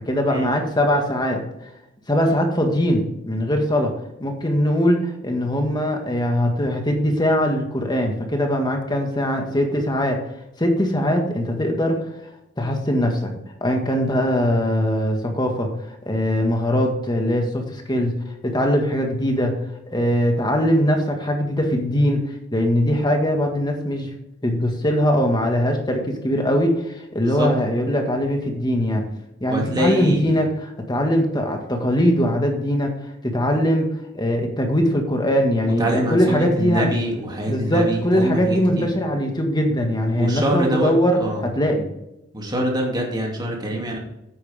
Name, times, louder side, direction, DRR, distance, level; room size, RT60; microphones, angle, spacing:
voice 1, 0.1-1.4 2.1-3.9 4.2-10.2 10.6-12.0 12.6-18.1 18.4-19.6 19.9-22.2 22.5-24.1 24.4-29.0 29.4-32.9 33.2-33.9 34.1-36.9 37.5-41.9, equal, 20° left, 3 dB, 1.8 m, -21 dB
voice 2, 29.5-30.3 35.8-38.9 40.1-41.4 42.3-44.0, right 1 dB, 20° right, -1 dB, 2.6 m, -24 dB
9.7 x 8.7 x 3.6 m, 0.85 s
head